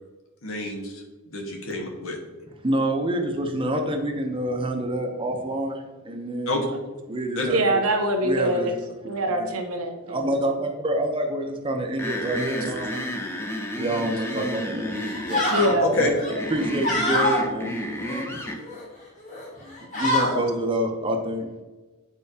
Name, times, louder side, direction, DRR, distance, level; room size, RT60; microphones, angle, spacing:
voice 1, 0.4-2.2 6.5-6.6 7.3-7.5 15.8-16.1, left 2 dB, 70° left, 1 dB, 1.3 m, -27 dB
voice 2, 2.6-6.6 7.1-7.8 8.2-8.7 9.4-9.5 10.0-13.1 13.8-15.5 16.0-16.1 16.5-17.8 19.6-21.5, right 1 dB, 25° right, 4 dB, 0.7 m, -27 dB
voice 3, 7.5-8.7 9.1-10.3 15.5-15.9, right 1 dB, 85° right, 4 dB, 0.9 m, -23 dB
sound 1, 12.0-18.6, equal, 10° left, 0.6 m, -32 dB
sound 2, 14.3-14.5 15.0-15.7 16.2-17.4 18.0-18.8 19.3-19.5 19.7-20.4, left 1 dB, 35° left, 1.9 m, -26 dB
8.5 x 4.5 x 2.8 m, 1.2 s
head